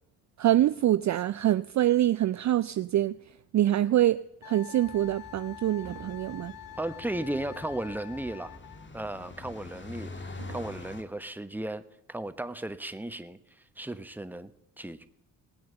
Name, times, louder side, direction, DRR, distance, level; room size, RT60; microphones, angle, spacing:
voice 1, 0.4-3.2 3.5-4.2 4.4-6.5, right 13 dB, 45° right, 0.4 m, -25 dB
Fireworks, 0.5-3.1 3.8-4.0 5.8-8.4 8.7-8.8 10.4-12.3 13.0-13.1, right 7 dB, 75° right, 1.7 m, -54 dB
Wind instrument woodwind instrument, 4.4-8.9, left 12 dB, 55° left, 0.6 m, -46 dB
sound 1, 4.8-11.0, left 3 dB, 25° left, 1.8 m, -45 dB
voice 2, 6.8-8.5 8.9-11.8 12.1-13.4 13.8-14.5 14.8-15.1, right 1 dB, 5° right, 1.0 m, -35 dB
18.5 x 7.7 x 6.7 m
hypercardioid pair, 50°, 42 cm